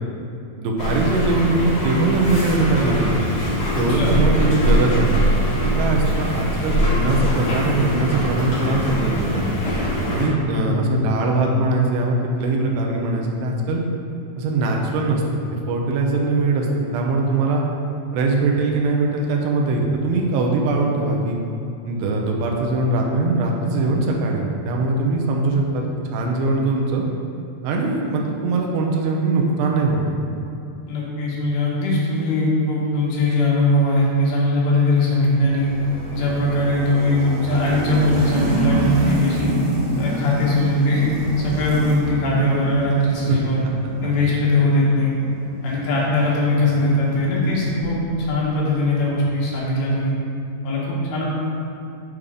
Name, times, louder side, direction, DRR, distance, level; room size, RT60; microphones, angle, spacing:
voice 1, 0.6-3.2 3.8-5.2 5.5-9.4 10.1-13.8 14.4-15.2 15.5-16.7 16.9-17.6 18.1-21.4 21.8-25.8 26.1-27.0 27.6-30.1 43.3-43.4, right 3 dB, 80° right, 0 dB, 2.8 m, -21 dB
sound 1, 0.8-10.3, equal, 50° left, 1.5 m, -22 dB
voice 2, 30.9-35.7 36.1-39.6 40.0-41.1 41.4-43.7 44.0-45.1 45.6-50.1 50.6-51.3, left 1 dB, 75° left, -6 dB, 3.5 m, -20 dB
sound 2, 35.2-48.3, equal, 65° right, 2.4 m, -28 dB
8.1 x 5.1 x 3.7 m, 2.6 s
omnidirectional pair, 5.2 m